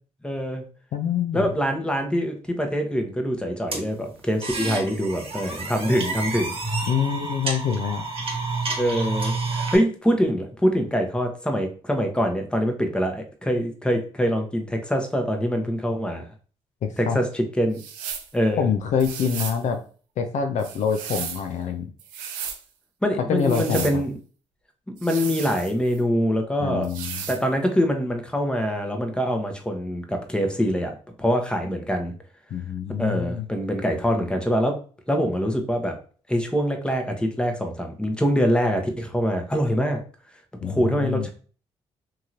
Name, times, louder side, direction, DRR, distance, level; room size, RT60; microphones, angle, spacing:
voice 1, 0.2-0.6 1.3-6.6 8.8-16.2 17.0-17.8 18.3-18.7 23.0-24.2 25.0-26.9 27.3-32.1 33.0-34.8 35.1-36.0 36.3-40.0 40.6-41.3, equal, 5° left, 4 dB, 0.8 m, -24 dB
voice 2, 0.9-1.5 6.9-8.0 17.1-17.2 18.6-19.8 20.2-21.9 23.3-24.0 26.6-27.3 32.5-33.4 40.6-41.3, left 7 dB, 60° left, 6 dB, 0.5 m, -25 dB
sound 1, 3.7-9.8, right 3 dB, 40° right, 1.1 m, -29 dB
sound 2, 17.7-18.3 19.0-19.6 20.6-21.5 22.0-22.6 23.4-24.0 25.0-26.0 26.8-27.4, right 8 dB, 85° right, 0.4 m, -35 dB
2.9 x 2.8 x 2.5 m, 0.39 s
hypercardioid pair, 50°, 14 cm